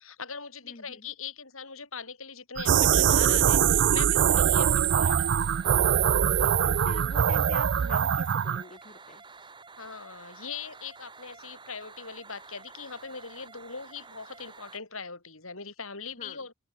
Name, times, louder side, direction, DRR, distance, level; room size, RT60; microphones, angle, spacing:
voice 1, 0.0-5.5 9.8-16.5, left 5 dB, 70° left, 6.2 m, -41 dB
voice 2, 0.6-1.1 4.3-4.6 6.2-9.2 16.2-16.4, left 3 dB, 35° left, 1.0 m, -45 dB
sound 1, 2.6-8.6, right 9 dB, 55° right, 0.4 m, -23 dB
sound 2, 2.8-14.8, right 4 dB, 20° right, 1.7 m, -50 dB
open air
head